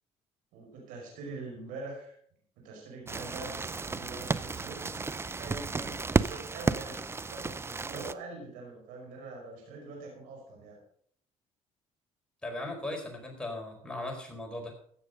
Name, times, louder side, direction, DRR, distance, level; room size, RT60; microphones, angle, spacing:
voice 1, 0.5-2.2 2.6-10.8, right 3 dB, 85° right, -1 dB, 5.2 m, -44 dB
sound 1, 3.1-8.1, right 4 dB, 20° right, 0.5 m, -32 dB
voice 2, 12.4-14.7, left 1 dB, 5° left, 1 dB, 4.5 m, -38 dB
16.0 x 6.4 x 5.4 m, 0.62 s
cardioid pair, 90°, 13 cm